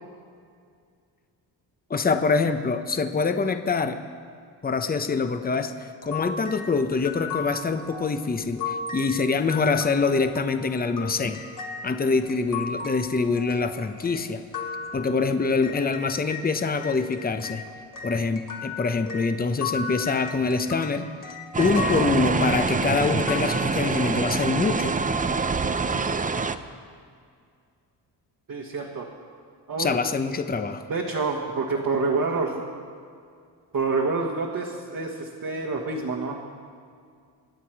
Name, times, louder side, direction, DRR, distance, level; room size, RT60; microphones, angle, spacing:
voice 1, 1.9-4.0 4.6-11.4 11.8-14.4 14.9-17.6 18.0-21.1 21.6-24.9 29.8-30.8, left 4 dB, 20° left, 8 dB, 0.8 m, -25 dB
sound 1, 6.0-16.5 16.8-24.2, left 4 dB, 50° left, 1.7 m, -36 dB
sound 2, 21.5-26.6, right 4 dB, 20° right, 0.6 m, -25 dB
voice 2, 28.5-29.1 29.7-29.9 30.9-32.6 33.7-36.4, right 4 dB, 50° right, -1 dB, 1.6 m, -27 dB
23.5 x 8.4 x 4.7 m, 2.2 s
cardioid pair, 80°, 43 cm